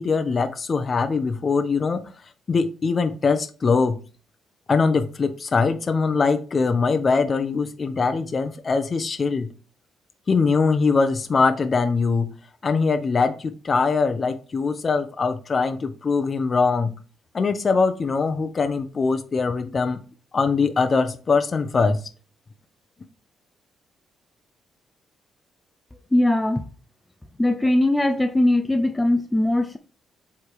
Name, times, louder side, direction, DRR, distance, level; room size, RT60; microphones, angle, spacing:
voice 1, 0.0-2.0 2.5-4.0 4.7-9.5 10.3-12.3 12.6-16.9 17.3-20.0 20.3-22.0, left 4 dB, 35° left, 0.9 m, -22 dB
voice 2, 26.1-26.6 27.4-29.8, left 1 dB, 10° left, 0.7 m, -20 dB
8.2 x 3.6 x 4.7 m
cardioid pair, 90°, 0 cm